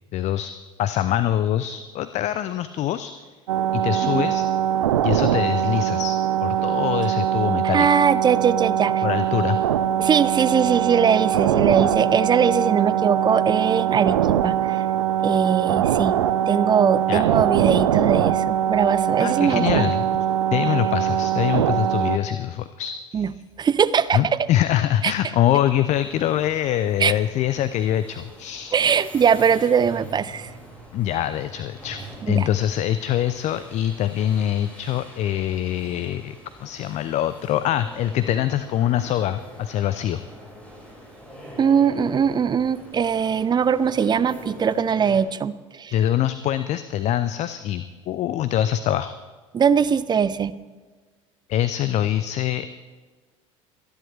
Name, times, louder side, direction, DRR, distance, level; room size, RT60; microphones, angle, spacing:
voice 1, 0.1-0.5 0.8-3.1 3.7-4.4 5.0-7.9 9.0-9.6 17.1-17.2 19.2-20.0 20.5-23.3 24.1-28.8 30.9-32.0 32.3-40.2 45.9-49.1 51.5-52.7, left 11 dB, 45° left, 13 dB, 0.6 m, -24 dB
sound 1, 3.5-22.2, right 10 dB, 75° right, 0.6 m, -22 dB
voice 2, 7.6-9.0 10.0-14.8 15.2-16.2 16.5-19.9 23.1-23.3 23.6-24.2 25.0-25.1 27.0-27.1 28.7-30.5 32.3-32.5 41.6-45.9 49.5-50.5, right 7 dB, 25° right, 15 dB, 0.6 m, -21 dB
sound 2, 25.8-45.2, right 1 dB, 10° left, 5.6 m, -44 dB
26.5 x 10.5 x 3.3 m, 1.4 s
figure-of-eight pair, 70°, 17 cm